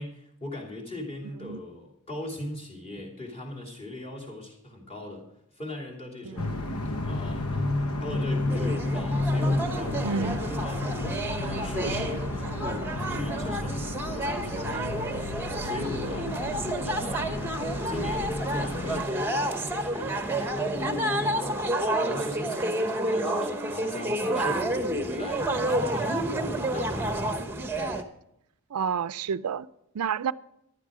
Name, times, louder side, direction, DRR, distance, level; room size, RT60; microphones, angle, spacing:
voice 1, 0.0-5.3 5.5-11.0 11.4-16.5 16.8-17.3 17.8-21.6 22.0-27.3, left 1 dB, 25° left, -2 dB, 2.9 m, -39 dB
sound 1, 6.4-19.0, left 2 dB, 80° left, 1.2 m, -31 dB
sound 2, 8.5-28.0, right 1 dB, 10° right, 0.9 m, -30 dB
voice 2, 10.0-10.4 28.7-29.7 29.9-30.3, right 6 dB, 90° right, 15 dB, 0.4 m, -29 dB
14.0 x 11.5 x 5.0 m, 0.78 s
head